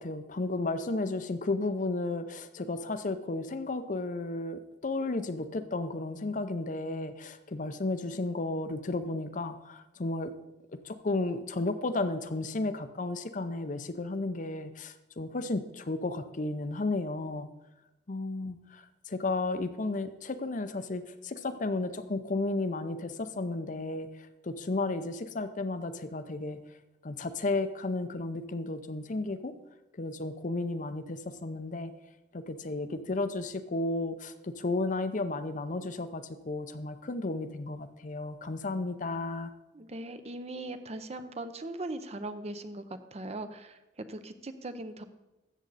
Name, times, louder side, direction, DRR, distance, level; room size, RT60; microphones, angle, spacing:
voice 1, 0.0-10.3 10.8-17.5 18.1-26.6 27.0-29.5 29.9-31.9 32.3-39.5, left 2 dB, 45° left, 10 dB, 0.6 m, -33 dB
voice 2, 39.7-42.8 43.1-45.0, right 2 dB, 35° right, 10 dB, 0.7 m, -39 dB
13.5 x 7.8 x 4.1 m, 1.0 s
head